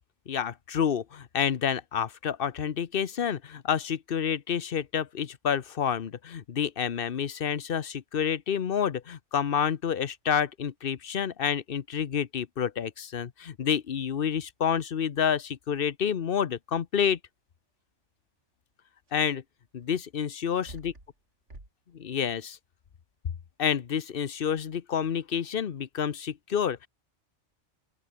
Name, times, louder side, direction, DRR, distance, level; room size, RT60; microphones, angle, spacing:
voice 1, 0.3-17.2 19.1-19.4 19.7-20.6 21.9-22.6 23.6-26.9, left 8 dB, 55° left, 1.0 m, -29 dB
sound 1, 19.1-19.2 20.4-21.2 21.5-21.7, right 2 dB, 85° right, 5.7 m, -47 dB
open air
omnidirectional pair, 1.2 m